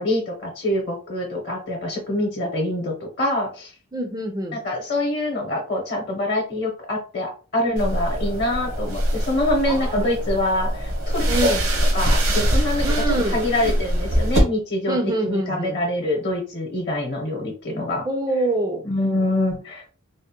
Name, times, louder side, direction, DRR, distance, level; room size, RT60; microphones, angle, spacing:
voice 1, 0.0-3.7 4.5-11.6 11.9-18.0 18.8-20.0, left 1 dB, 55° left, 1 dB, 0.8 m, -25 dB
voice 2, 3.9-4.6 9.7-10.1 11.3-11.6 12.8-13.4 14.9-15.8 18.1-18.8, right 2 dB, 20° right, 3 dB, 0.4 m, -25 dB
sound 1, 7.8-14.4, equal, 75° right, 1.0 m, -23 dB
3.4 x 2.1 x 2.8 m, 0.37 s
head